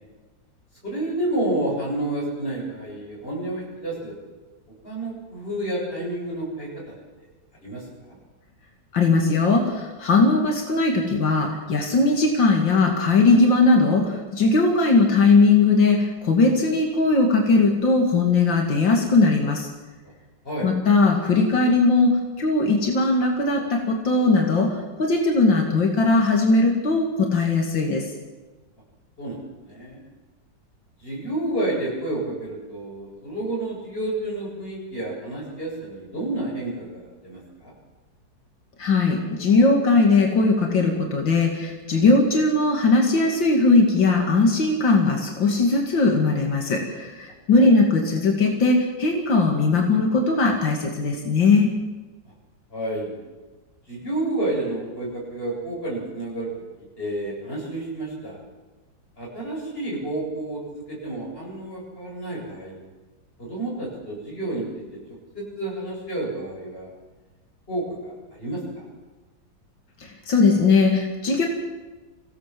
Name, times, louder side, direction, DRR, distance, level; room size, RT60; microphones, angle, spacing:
voice 1, 0.8-4.1 4.8-6.9 7.6-7.8 8.1-8.2 20.4-20.7 29.2-30.0 31.0-37.7 47.6-47.8 52.7-53.1 53.9-56.5 57.0-58.4 59.2-62.8 63.4-65.0 65.3-66.9 67.7-68.8, right 1 dB, 30° left, -4 dB, 8.3 m, -30 dB
voice 2, 8.9-19.7 20.6-28.1 38.8-51.7 70.0-71.5, left 3 dB, 85° left, 1 dB, 3.0 m, -19 dB
25.0 x 16.5 x 7.6 m, 1.2 s
omnidirectional pair, 2.0 m